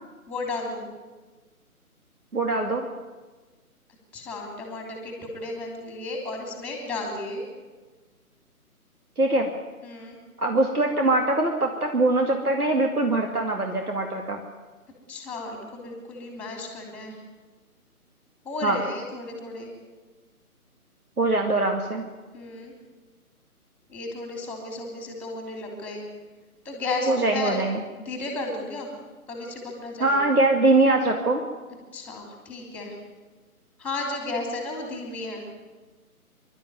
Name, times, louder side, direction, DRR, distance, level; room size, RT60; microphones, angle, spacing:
voice 1, 0.3-0.9 4.1-7.4 9.8-10.2 15.1-17.2 18.4-19.7 22.3-22.7 23.9-26.0 26.6-27.6 28.0-28.9 29.3-30.2 31.9-33.0 33.8-35.4, left 2 dB, 5° left, 2 dB, 3.0 m, -33 dB
voice 2, 2.3-2.9 9.2-9.5 10.4-14.4 18.6-18.8 21.2-22.0 27.1-27.8 30.0-31.4, right 2 dB, 75° right, 2 dB, 2.5 m, -22 dB
25.5 x 12.5 x 9.4 m, 1.3 s
figure-of-eight pair, 140°, 45 cm